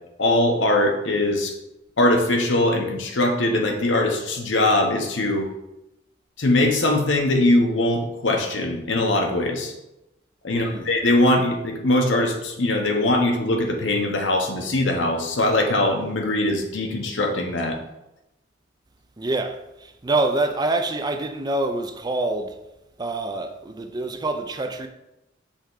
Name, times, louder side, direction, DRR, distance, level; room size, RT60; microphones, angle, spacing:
voice 1, 0.2-1.5 2.0-5.5 6.4-9.7 10.4-17.8, left 1 dB, 75° left, 1.0 m, -21 dB
voice 2, 10.5-10.9 19.2-22.6 23.0-24.9, right 2 dB, 20° right, 0.4 m, -26 dB
5.6 x 3.4 x 4.8 m
head